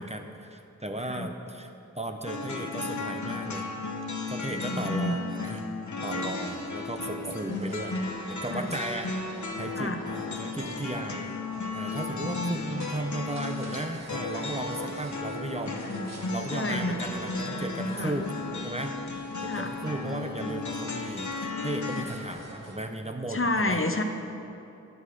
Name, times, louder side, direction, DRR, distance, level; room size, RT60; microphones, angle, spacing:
voice 1, 0.0-3.7 4.3-5.6 6.0-8.0 8.3-9.1 9.6-11.4 11.7-15.8 16.3-18.3 18.6-19.0 19.4-23.8, right 1 dB, 20° right, 5 dB, 0.8 m, -35 dB
sound 1, 2.3-22.1, left 3 dB, 65° left, 1.0 m, -35 dB
voice 2, 4.5-5.1 6.1-6.3 8.5-8.7 9.7-10.0 12.2-12.8 16.5-17.0 18.0-18.1 19.5-19.7 23.3-24.0, left 2 dB, 45° left, 5 dB, 0.9 m, -30 dB
sound 2, 6.6-22.8, right 1 dB, 55° right, 1.5 m, -46 dB
9.8 x 8.1 x 6.9 m, 2.7 s
wide cardioid pair, 40°, 31 cm